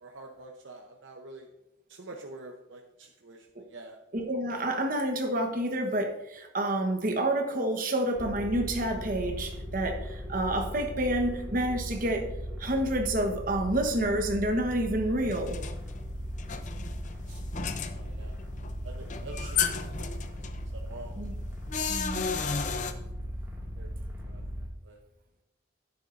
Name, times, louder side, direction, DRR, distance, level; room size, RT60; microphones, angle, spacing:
voice 1, 0.0-1.5 1.9-4.0 17.3-17.5 17.9-18.4 18.8-20.1 20.3-20.5 20.7-21.2 23.8-23.9 24.2-24.4 24.8-25.0, right 2 dB, 75° right, 2 dB, 0.8 m, -46 dB
voice 2, 4.1-12.3 12.6-15.6 21.2-21.3 21.9-22.2, right 1 dB, 45° right, 4 dB, 1.2 m, -29 dB
sound 1, 8.2-24.7, equal, 10° right, 2.1 m, -38 dB
sound 2, 15.2-22.9, left 6 dB, 40° left, 0.6 m, -34 dB
11.0 x 9.7 x 2.6 m, 0.93 s
head